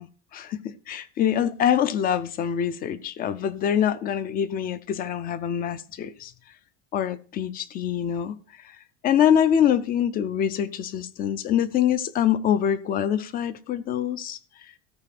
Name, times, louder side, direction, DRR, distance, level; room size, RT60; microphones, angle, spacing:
voice 1, 0.0-6.3 6.9-8.3 9.0-14.4, left 9 dB, 25° left, 0.4 m, -24 dB
13.5 x 4.9 x 5.8 m
cardioid pair, 175°, 35 cm